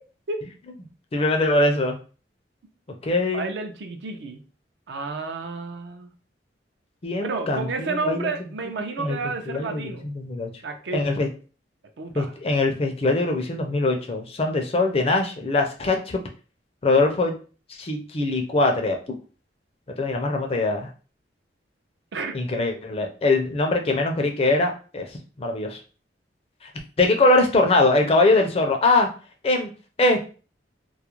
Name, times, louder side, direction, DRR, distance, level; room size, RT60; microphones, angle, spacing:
voice 1, 1.1-2.0 3.0-3.5 7.0-8.3 9.0-9.2 9.5-10.5 10.9-11.3 12.2-16.2 16.8-17.4 17.8-19.0 20.0-20.9 22.3-25.1 25.4-25.8 26.6-26.7 27.0-29.1 29.4-29.7 30.0-30.2, left 2 dB, 30° left, 3 dB, 0.4 m, -22 dB
voice 2, 3.3-4.4 4.9-6.1 7.2-10.1 10.6-11.0 12.0-12.3 22.1-22.3, right 4 dB, 70° right, 5 dB, 0.5 m, -31 dB
2.3 x 2.0 x 2.9 m, 0.36 s
head